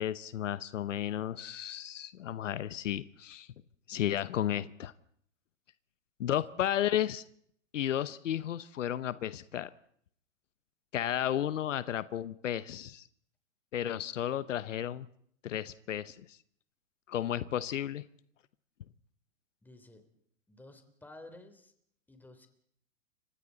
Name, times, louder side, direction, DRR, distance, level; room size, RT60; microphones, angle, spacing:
voice 1, 0.0-3.5 3.9-4.9 6.2-7.2 7.7-9.7 10.9-13.1 13.7-15.1 15.4-16.4 17.1-18.0, left 11 dB, 75° left, 16 dB, 1.0 m, -33 dB
voice 2, 19.6-20.1 20.5-21.7 22.1-22.5, left 2 dB, 5° left, 7 dB, 3.3 m, -53 dB
30.0 x 25.5 x 4.0 m, 0.65 s
hypercardioid pair, 120°, 38 cm